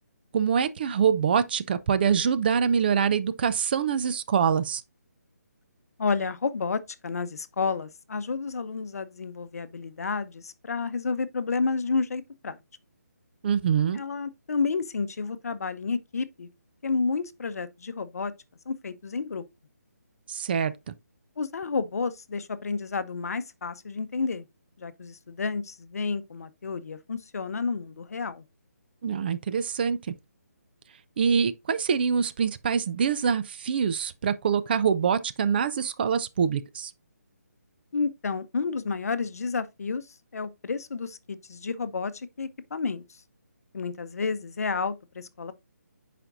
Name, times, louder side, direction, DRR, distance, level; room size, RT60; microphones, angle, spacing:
voice 1, 0.3-4.8 13.4-14.0 20.3-20.9 29.0-30.0 31.2-36.9, right 7 dB, 35° right, 0.5 m, -25 dB
voice 2, 6.0-12.6 13.9-16.5 16.8-18.3 18.7-19.5 21.4-24.4 24.8-28.4 37.9-40.1 40.3-43.0 43.7-45.5, left 4 dB, 65° left, 0.7 m, -30 dB
8.8 x 5.0 x 2.5 m
figure-of-eight pair, 155°, 9 cm